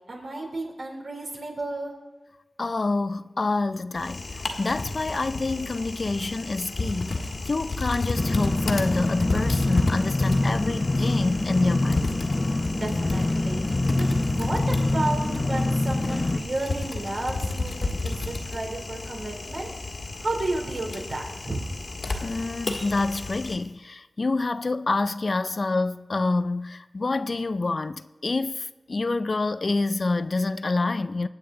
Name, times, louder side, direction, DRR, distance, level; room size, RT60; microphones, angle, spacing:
voice 1, 0.1-1.9 12.7-13.6 14.1-19.7 20.2-21.6, right 2 dB, 60° right, 3.2 m, -32 dB
voice 2, 2.6-4.3 4.6-7.2 7.4-12.1 22.2-31.3, left 3 dB, 50° left, 0.4 m, -27 dB
Typing, 3.9-23.6, left 2 dB, 75° left, 1.7 m, -32 dB
sound 1, 8.1-16.4, left 2 dB, 30° left, 1.0 m, -25 dB
24.5 x 8.6 x 3.8 m
wide cardioid pair, 75°, 0 cm